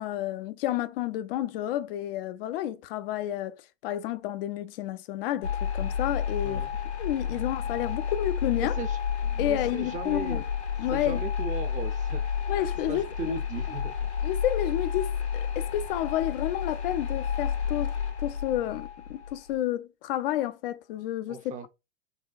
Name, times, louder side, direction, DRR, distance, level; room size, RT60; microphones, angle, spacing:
voice 1, 0.0-3.6 3.8-6.7 7.0-8.8 9.4-10.4 10.8-11.2 12.5-13.4 14.2-17.9 18.2-21.7, left 12 dB, 60° left, 0.5 m, -30 dB
sound 1, 5.4-19.5, left 7 dB, 90° left, 0.8 m, -31 dB
voice 2, 8.6-10.4 10.9-12.5 12.9-13.9 21.3-21.7, right 6 dB, 25° right, 0.5 m, -38 dB
4.0 x 2.2 x 2.5 m
hypercardioid pair, 95°, 33 cm